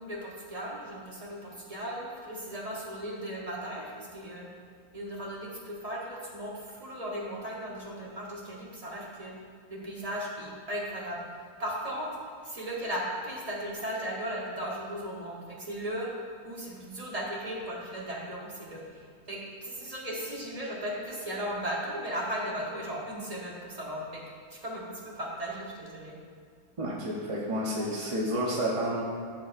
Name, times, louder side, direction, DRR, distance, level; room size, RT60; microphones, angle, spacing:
voice 1, 0.0-4.5 4.9-9.3 9.7-16.1 16.4-24.2 24.5-26.1, equal, 30° right, -3 dB, 0.9 m, -36 dB
voice 2, 26.8-29.0, equal, 45° right, -3 dB, 0.4 m, -30 dB
12.0 x 4.4 x 2.4 m, 2.1 s
omnidirectional pair, 1.6 m